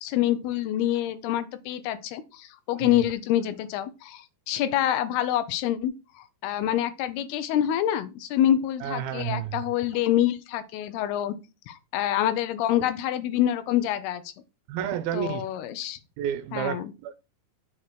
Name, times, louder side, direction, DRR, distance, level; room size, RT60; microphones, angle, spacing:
voice 1, 0.0-5.9 6.2-11.3 11.7-14.3 15.1-16.0 16.5-16.9, left 12 dB, 85° left, 2.7 m, -26 dB
voice 2, 8.8-9.6 14.7-15.4 16.2-17.2, right 10 dB, 80° right, 2.3 m, -30 dB
7.3 x 4.5 x 4.5 m
omnidirectional pair, 4.5 m